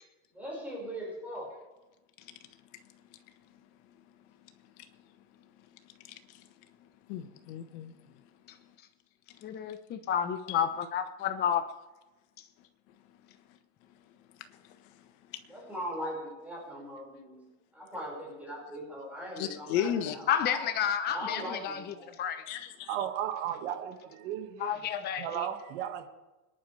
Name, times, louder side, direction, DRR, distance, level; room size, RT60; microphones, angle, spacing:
voice 1, 0.3-1.5 15.5-17.4 17.7-20.7 21.0-22.1, equal, 5° right, 5.5 m, -40 dB
voice 2, 6.0-6.5 7.1-8.0 10.5-10.6 14.5-14.8 15.3-15.4 19.4-20.2 22.5-23.0, left 9 dB, 55° left, 1.5 m, -35 dB
voice 3, 9.4-11.7 20.3-22.5 24.6-25.5, left 9 dB, 25° left, 0.9 m, -31 dB
voice 4, 22.9-24.7 25.2-26.1, right 10 dB, 60° right, 2.0 m, -35 dB
25.5 x 11.0 x 3.4 m
supercardioid pair, 150°, 39 cm